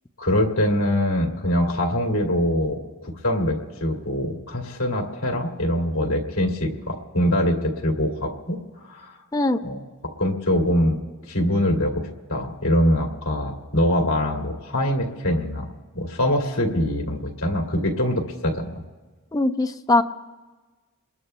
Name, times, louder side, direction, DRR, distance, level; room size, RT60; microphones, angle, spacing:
voice 1, 0.2-8.6 8.9-9.1 9.6-9.8 10.2-11.0 11.3-15.7 15.9-18.8, left 1 dB, 65° left, 0 dB, 2.3 m, -23 dB
voice 2, 19.3-20.0, left 2 dB, 15° left, 7 dB, 0.5 m, -21 dB
27.5 x 21.5 x 2.2 m, 1.3 s
head